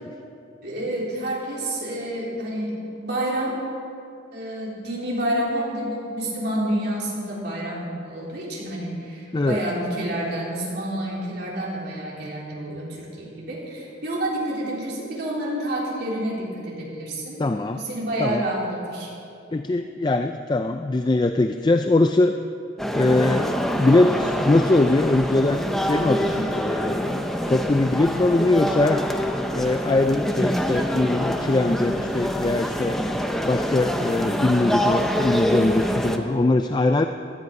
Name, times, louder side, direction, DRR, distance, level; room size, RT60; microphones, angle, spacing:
voice 1, 0.6-3.6 4.3-17.4 17.7-19.1, right 1 dB, 55° right, -5 dB, 3.9 m, -29 dB
voice 2, 17.4-17.8 18.2-18.4 19.5-22.3 22.9-29.1 29.5-33.0 33.4-37.1, left 2 dB, 25° left, 7 dB, 0.3 m, -22 dB
sound 1, 22.8-36.2, equal, ahead, 0.7 m, -25 dB
17.0 x 12.5 x 5.3 m, 2.6 s
head